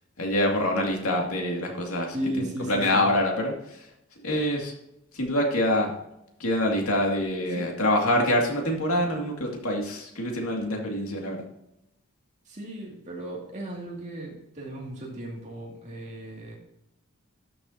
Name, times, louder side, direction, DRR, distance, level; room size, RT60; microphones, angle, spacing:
voice 1, 0.2-3.9 4.2-4.7 5.1-5.9 6.4-11.4, left 1 dB, 85° left, 0 dB, 2.3 m, -26 dB
voice 2, 2.1-3.0 7.6-7.7 12.5-16.5, right 1 dB, 35° right, -2 dB, 2.5 m, -35 dB
12.5 x 6.9 x 2.8 m, 0.82 s
head